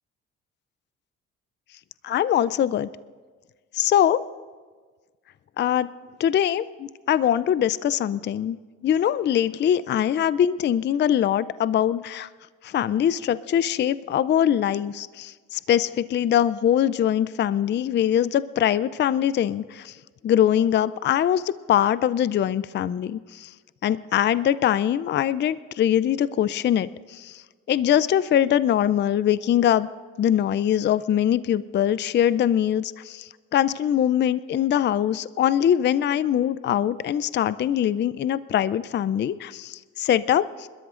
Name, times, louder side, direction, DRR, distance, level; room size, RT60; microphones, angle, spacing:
voice 1, 2.0-2.9 3.7-4.2 5.6-5.9 6.2-8.6 8.8-12.3 12.6-19.9 20.2-23.5 23.8-27.4 27.7-29.9 30.2-40.7, left 10 dB, 35° left, 16 dB, 0.4 m, -22 dB
28.0 x 13.0 x 2.5 m, 1.5 s
supercardioid pair, 75°, 31 cm